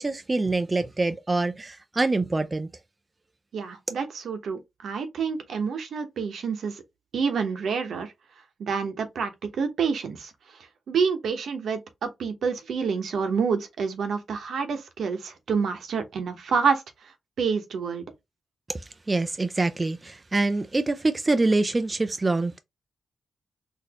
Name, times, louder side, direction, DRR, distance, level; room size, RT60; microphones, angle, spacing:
voice 1, 0.0-2.7 18.7-22.6, right 2 dB, 20° right, 0.4 m, -25 dB
voice 2, 3.5-6.8 7.1-8.1 8.6-10.3 10.9-16.8 17.4-18.0, right 5 dB, 75° right, 0.9 m, -28 dB
4.0 x 2.7 x 2.8 m
wide cardioid pair, 120°, 0 cm